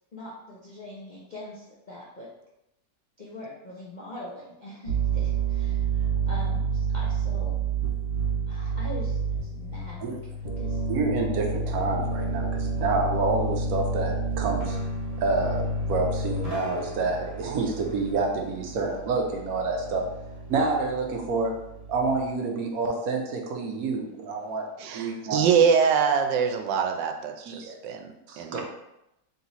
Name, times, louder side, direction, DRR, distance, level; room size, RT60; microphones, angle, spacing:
voice 1, 0.1-2.3 3.2-7.6 8.5-10.1 10.6-10.8, left 1 dB, 65° left, -6 dB, 0.4 m, -42 dB
sound 1, 4.9-22.3, right 4 dB, 50° right, 1.4 m, -30 dB
voice 2, 10.9-14.8 15.2-20.1 20.5-21.5 21.9-24.7 24.9-25.4 27.5-27.8 28.3-28.6, right 3 dB, 70° right, 2 dB, 0.9 m, -28 dB
voice 3, 24.8-28.6, right 6 dB, 90° right, 5 dB, 1.3 m, -24 dB
3.6 x 2.9 x 4.0 m, 0.87 s
omnidirectional pair, 1.9 m